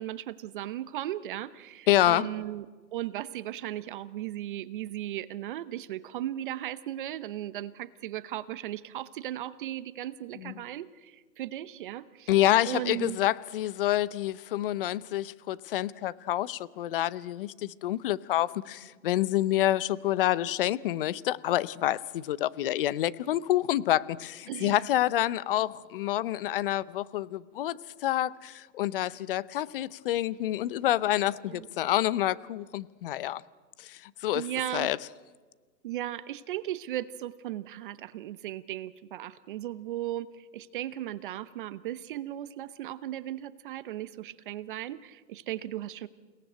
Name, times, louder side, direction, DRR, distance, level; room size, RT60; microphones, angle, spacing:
voice 1, 0.0-2.7 2.9-12.3 12.7-13.2 24.5-24.8 31.5-31.7 34.3-34.9 35.8-46.1, right 13 dB, 30° right, 16 dB, 0.7 m, -36 dB
voice 2, 1.9-2.3 10.4-10.5 12.3-33.4 33.8-34.4 34.7-35.0, left 13 dB, 35° left, 19 dB, 0.7 m, -28 dB
29.0 x 18.5 x 9.2 m, 1.4 s
hypercardioid pair, 140°, 49 cm